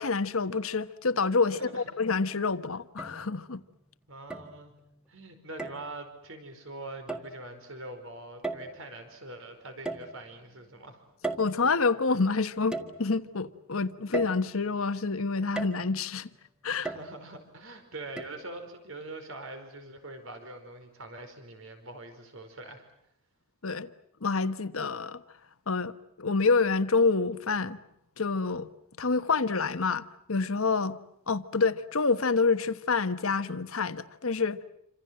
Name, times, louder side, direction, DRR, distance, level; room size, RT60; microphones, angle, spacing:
voice 1, 0.0-3.6 11.4-16.3 16.6-16.9 23.6-23.9 24.2-25.2 25.7-27.8 28.2-28.7 29.0-31.0 31.3-34.6, left 4 dB, 75° left, 1.2 m, -27 dB
voice 2, 1.5-1.9 4.1-4.7 5.1-11.0 16.8-22.8, right 2 dB, 65° right, 4.9 m, -43 dB
sound 1, 1.9-2.0 3.0-3.6 4.3-4.9 5.6-5.9 7.1-7.4 8.4-9.0 9.9-10.5 11.2-12.1 12.7-13.4 14.1-14.9 15.6-16.1 16.9-17.5 18.2-18.3, right 3 dB, 5° right, 1.7 m, -37 dB
28.0 x 26.5 x 7.7 m
head